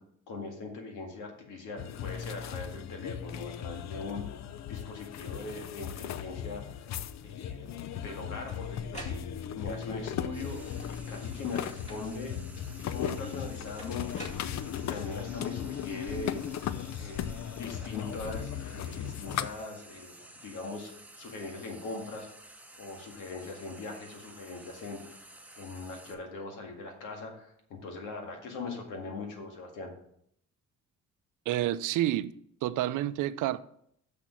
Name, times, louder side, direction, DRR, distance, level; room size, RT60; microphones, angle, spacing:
voice 1, 0.3-6.6 7.2-9.2 9.5-10.6 10.9-12.3 12.9-14.3 14.9-16.4 17.0-20.1 20.4-22.3 22.8-29.9, left 3 dB, 90° left, 2.0 m, -41 dB
sound 1, 1.8-19.5, left 9 dB, 65° left, 0.6 m, -37 dB
sound 2, 7.9-9.8 10.6-11.2 11.9-12.4 13.8-15.1, right 1 dB, 20° left, 2.3 m, -47 dB
Frying (food), 10.3-26.1, right 1 dB, 5° right, 1.0 m, -52 dB
voice 2, 31.5-32.3 32.6-33.6, right 13 dB, 85° right, 0.5 m, -29 dB
6.7 x 6.2 x 6.0 m
cardioid pair, 90°, 30 cm